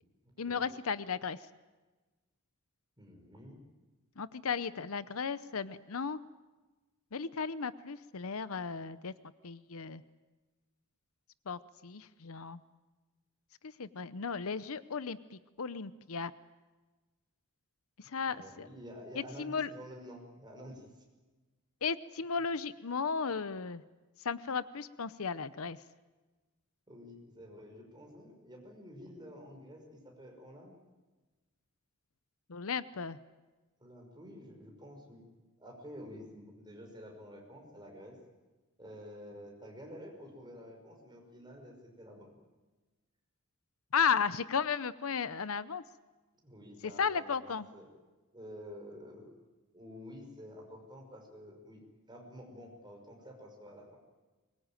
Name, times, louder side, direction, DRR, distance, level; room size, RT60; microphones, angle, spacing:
voice 1, 0.4-1.4 4.2-6.2 7.1-9.1 9.4-10.0 11.5-12.6 13.8-15.2 15.6-16.3 18.1-18.7 19.2-19.7 21.8-23.8 24.2-25.8 32.5-33.2 43.9-45.8 47.0-47.7, left 6 dB, 65° left, 15 dB, 0.7 m, -34 dB
voice 2, 3.0-3.6 18.3-20.9 26.9-30.8 33.8-35.2 35.6-38.2 38.8-42.3 46.4-47.9 48.3-49.3 49.7-54.0, equal, 20° right, 1 dB, 5.5 m, -50 dB
24.0 x 22.0 x 9.1 m, 1.2 s
head